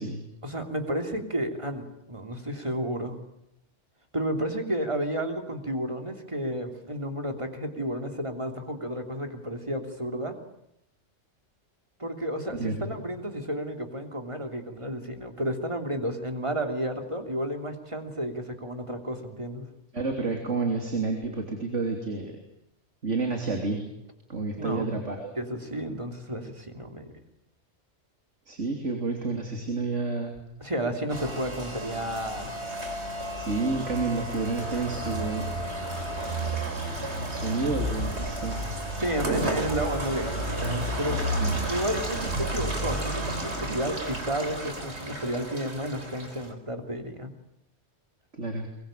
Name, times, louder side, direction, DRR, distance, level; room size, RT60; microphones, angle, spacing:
voice 1, 0.4-3.2 4.1-10.4 12.0-19.7 24.6-25.0 25.4-27.1 30.6-32.5 39.0-41.2 41.7-47.3, equal, 25° right, 5 dB, 3.2 m, -32 dB
voice 2, 12.6-13.0 19.9-22.4 23.0-23.8 24.3-25.3 28.5-30.4 33.4-35.5 37.2-38.7 39.3-39.5 41.4-41.7 48.3-48.7, right 3 dB, 90° right, 3 dB, 3.5 m, -30 dB
Rain, 31.1-46.5, right 1 dB, 65° right, 4.3 m, -32 dB
23.0 x 22.5 x 9.1 m, 0.82 s
omnidirectional pair, 1.2 m